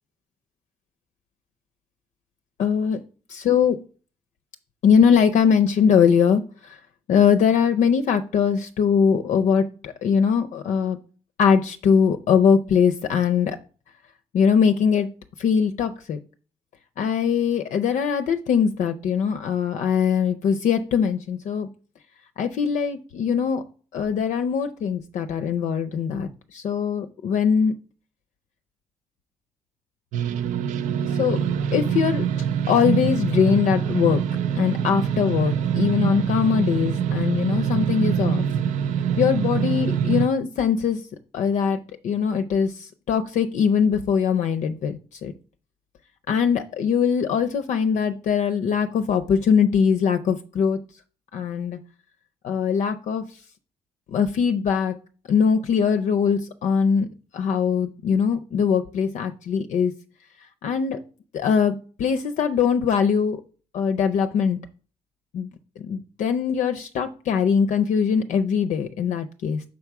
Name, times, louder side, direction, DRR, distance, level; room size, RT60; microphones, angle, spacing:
voice 1, 2.6-3.0 3.3-3.8 4.8-6.8 7.1-11.0 11.4-13.6 14.3-15.1 15.4-16.2 17.0-21.7 22.4-23.6 23.9-27.7 31.1-32.2 32.7-34.2 34.5-38.4 39.2-41.0 41.3-41.8 42.0-45.3 46.3-50.8 51.3-51.8 52.4-53.2 54.1-55.0 55.3-57.1 57.3-59.9 60.6-61.0 61.3-63.4 63.7-64.6 65.3-65.5 65.8-69.6, left 7 dB, 70° left, 8 dB, 0.5 m, -21 dB
sound 1, 30.1-40.3, right 8 dB, 80° right, 0.5 m, -24 dB
6.1 x 3.5 x 5.8 m, 0.39 s
cardioid pair, 75°, 13 cm